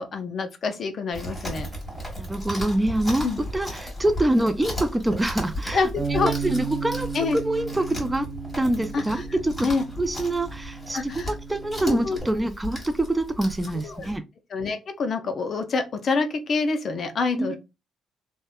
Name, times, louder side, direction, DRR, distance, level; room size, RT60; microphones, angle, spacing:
voice 1, 0.0-1.7 3.2-3.4 5.7-6.3 7.1-7.4 8.9-9.2 9.6-9.8 10.9-11.3 11.8-12.2 13.8-14.1 14.5-17.6, left 4 dB, 50° left, 0.4 m, -26 dB
Chewing mastication, 1.1-14.2, equal, 5° left, 1.5 m, -36 dB
voice 2, 2.2-3.3 3.5-5.8 6.2-8.3 8.6-9.5 10.0-14.2 17.3-17.6, right 1 dB, 15° right, 0.3 m, -25 dB
Bass guitar, 6.0-12.2, right 5 dB, 60° right, 1.0 m, -34 dB
2.8 x 2.1 x 2.3 m
cardioid pair, 90°, 0 cm